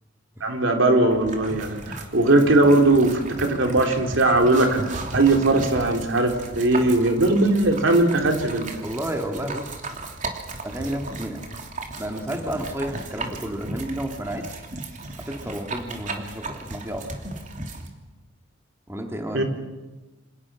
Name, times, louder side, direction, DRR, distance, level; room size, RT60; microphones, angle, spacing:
voice 1, 0.4-4.9 5.1-8.8 19.3-19.4, right 2 dB, 75° right, 3 dB, 3.4 m, -19 dB
sound 1, 1.1-17.9, right 2 dB, 40° right, 3.1 m, -35 dB
voice 2, 8.8-9.9 10.6-11.4 12.0-14.6 15.3-17.1 18.9-19.4, right 1 dB, 15° right, 2 dB, 2.5 m, -31 dB
27.5 x 27.0 x 6.2 m, 1.2 s
head